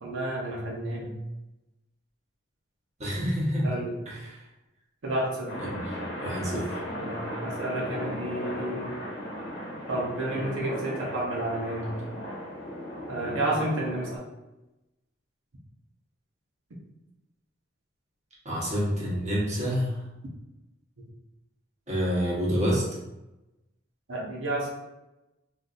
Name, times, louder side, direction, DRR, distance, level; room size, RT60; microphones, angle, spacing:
voice 1, 0.0-1.1 3.6-4.0 5.0-5.6 6.5-6.6 6.9-9.0 9.9-11.9 13.1-14.2 24.1-24.7, right 1 dB, 90° right, -3 dB, 0.7 m, -31 dB
voice 2, 3.0-3.7 4.1-4.2 5.7-5.8 6.2-6.8 18.4-20.0 21.9-22.8, equal, 40° right, -6 dB, 1.1 m, -27 dB
sound 1, 5.5-14.2, equal, 60° left, 1.0 m, -37 dB
3.9 x 2.5 x 2.5 m, 0.98 s
head